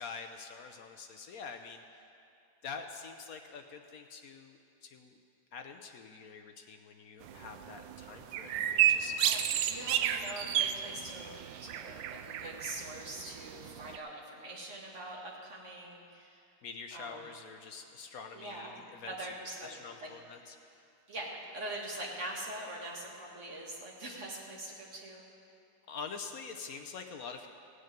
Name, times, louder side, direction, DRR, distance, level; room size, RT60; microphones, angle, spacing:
voice 1, 0.0-1.8 2.6-5.2 5.5-9.3 16.6-19.3 19.6-20.9 25.9-27.5, left 5 dB, 65° left, 5 dB, 0.9 m, -46 dB
sound 1, 7.2-14.0, right 10 dB, 75° right, 1.2 m, -32 dB
voice 2, 9.2-16.4 16.9-17.2 18.3-20.1 21.1-25.2, right 1 dB, 35° right, -2 dB, 2.2 m, -43 dB
16.5 x 6.5 x 9.0 m, 2.5 s
omnidirectional pair, 2.3 m